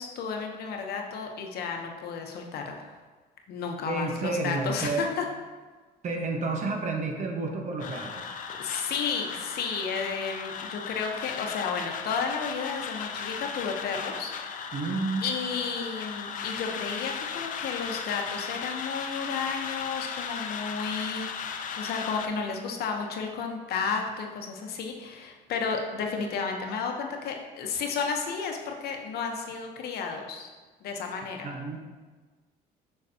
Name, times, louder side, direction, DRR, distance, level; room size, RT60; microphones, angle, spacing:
voice 1, 0.0-3.0 3.5-5.3 8.6-14.7 15.2-30.5 30.8-31.5, left 5 dB, 70° left, 2 dB, 0.9 m, -32 dB
voice 2, 3.9-5.0 6.0-8.4 14.7-15.2 31.4-31.8, right 3 dB, 45° right, 2 dB, 1.1 m, -30 dB
sound 1, 7.8-22.3, left 6 dB, 50° left, 0.6 m, -36 dB
6.7 x 5.9 x 2.8 m, 1.3 s
cardioid pair, 110°, 17 cm